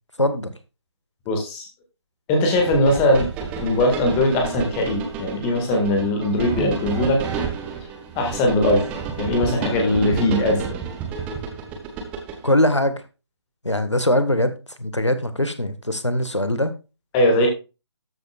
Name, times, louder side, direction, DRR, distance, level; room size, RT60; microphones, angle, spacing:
voice 1, 0.2-0.5 12.4-12.9 13.6-14.5 14.8-16.7, left 1 dB, 85° left, 10 dB, 1.7 m, -21 dB
voice 2, 1.3-1.7 2.3-3.3 3.6-7.2 8.1-8.8 9.2-10.6 17.1-17.5, left 1 dB, 15° left, 3 dB, 1.9 m, -20 dB
sound 1, 2.6-12.5, right 5 dB, 10° right, 1.1 m, -30 dB
13.5 x 8.5 x 2.4 m, 0.30 s
figure-of-eight pair, 150°, 15 cm